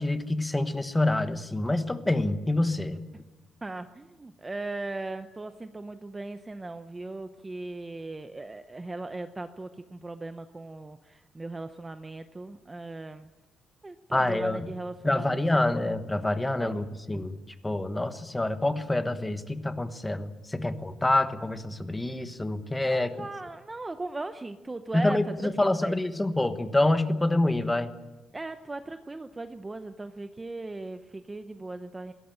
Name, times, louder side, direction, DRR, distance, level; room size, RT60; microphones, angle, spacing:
voice 1, 0.0-3.0 14.1-14.7 15.0-17.4 17.6-23.2 24.9-27.9, left 2 dB, 10° left, 9 dB, 1.2 m, -27 dB
voice 2, 3.6-13.3 13.8-15.9 16.6-16.8 20.6-20.7 22.9-25.9 28.3-32.1, right 2 dB, 15° right, 9 dB, 0.7 m, -38 dB
21.5 x 17.5 x 8.9 m, 1.1 s
cardioid pair, 165°, 0 cm